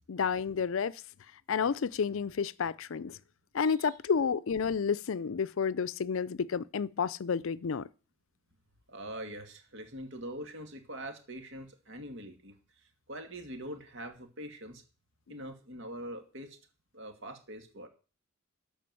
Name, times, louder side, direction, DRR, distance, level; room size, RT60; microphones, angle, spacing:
voice 1, 0.1-1.0 1.5-3.2 3.5-7.9, left 6 dB, 65° left, 0.5 m, -30 dB
voice 2, 3.6-3.9 8.9-12.5 13.1-14.8 15.3-16.6 16.9-17.9, right 1 dB, 60° right, 2.3 m, -43 dB
13.0 x 5.0 x 7.7 m
head